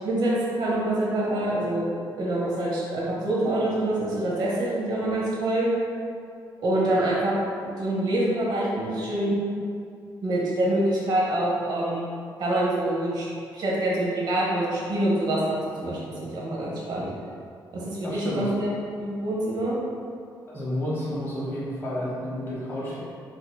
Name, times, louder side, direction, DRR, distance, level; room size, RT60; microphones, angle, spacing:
voice 1, 0.0-1.9 2.2-5.7 6.6-7.4 7.8-9.4 10.2-12.1 12.4-13.3 13.5-17.1 17.7-18.7 19.0-19.8, right 1 dB, 60° right, -5 dB, 0.8 m, -25 dB
voice 2, 18.0-18.5 20.5-23.0, left 1 dB, 30° left, -8 dB, 1.3 m, -31 dB
4.5 x 2.8 x 2.2 m, 2.4 s
cardioid pair, 110°, 8 cm